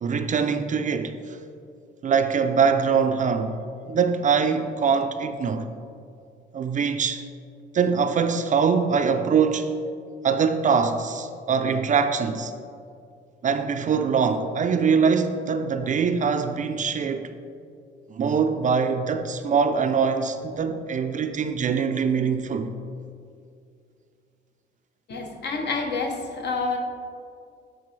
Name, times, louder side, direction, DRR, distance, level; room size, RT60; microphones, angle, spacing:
voice 1, 0.0-1.4 2.0-3.6 3.8-5.7 6.5-7.2 7.7-9.7 10.2-12.5 13.4-17.3 18.1-22.7, right 6 dB, 40° right, 0.4 m, -23 dB
voice 2, 25.1-26.8, left 4 dB, 60° left, 0.9 m, -28 dB
8.2 x 3.9 x 3.2 m
cardioid pair, 90°, 20 cm